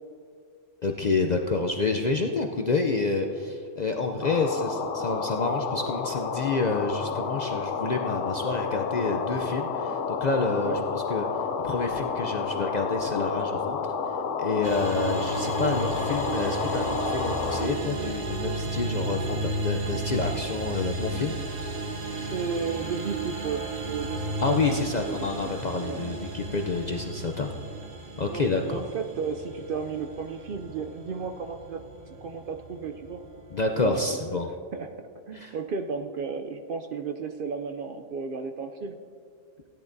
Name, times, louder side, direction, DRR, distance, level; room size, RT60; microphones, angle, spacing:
voice 1, 0.8-11.3 11.6-13.9 14.4-21.6 24.4-27.5 28.2-28.8 33.5-34.5 35.3-35.5, left 3 dB, 55° left, 3 dB, 0.5 m, -28 dB
sound 1, 4.2-17.7, left 5 dB, 75° left, 1.0 m, -30 dB
sound 2, 14.6-33.8, right 2 dB, 40° right, 0.9 m, -34 dB
voice 2, 22.2-24.8 25.1-25.2 25.4-25.5 25.9-26.0 28.2-31.8 32.2-33.2 33.8-34.2 34.7-34.9 35.3-39.0, right 5 dB, 60° right, 5 dB, 0.6 m, -33 dB
16.5 x 10.5 x 2.6 m, 2.3 s
omnidirectional pair, 1.3 m